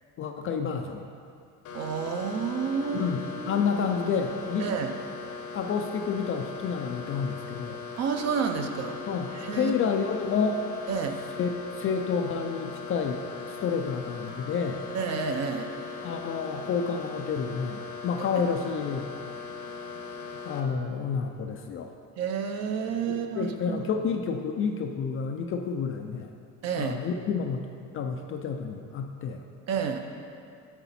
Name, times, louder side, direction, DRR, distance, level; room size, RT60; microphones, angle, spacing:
voice 1, 0.2-1.0 2.9-4.7 5.5-7.8 9.1-10.6 11.4-13.2 13.5-14.9 16.0-19.1 20.4-21.9 23.1-26.3 26.8-27.6 27.9-29.4, left 6 dB, 35° left, 4 dB, 0.4 m, -29 dB
sound 1, 1.6-20.6, left 4 dB, 50° left, 0.8 m, -39 dB
voice 2, 1.7-3.1 3.4-3.6 4.6-5.0 8.0-9.0 9.3-9.7 10.9-11.2 14.9-15.7 22.2-23.8 26.6-27.0 29.7-30.1, right 6 dB, 45° right, 5 dB, 0.6 m, -30 dB
7.0 x 6.9 x 4.1 m, 2.4 s
cardioid pair, 145°, 38 cm